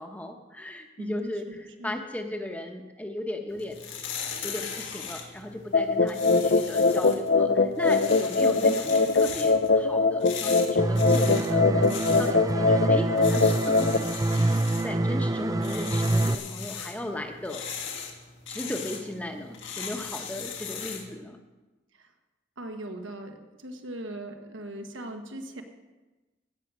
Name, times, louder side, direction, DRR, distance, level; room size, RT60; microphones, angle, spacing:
voice 1, 0.0-3.8 4.4-14.5 14.8-17.9 18.5-21.4, left 1 dB, 10° left, 4 dB, 0.9 m, -37 dB
voice 2, 1.0-2.0 8.5-8.8 22.0-22.1 22.6-25.6, right 1 dB, 80° right, 5 dB, 1.4 m, -39 dB
sound 1, 3.5-21.1, left 6 dB, 75° left, 1.6 m, -39 dB
sound 2, 5.7-14.0, left 4 dB, 55° left, 0.5 m, -22 dB
sound 3, 10.8-16.3, right 2 dB, 20° right, 0.3 m, -26 dB
16.0 x 6.6 x 6.2 m, 1.2 s
head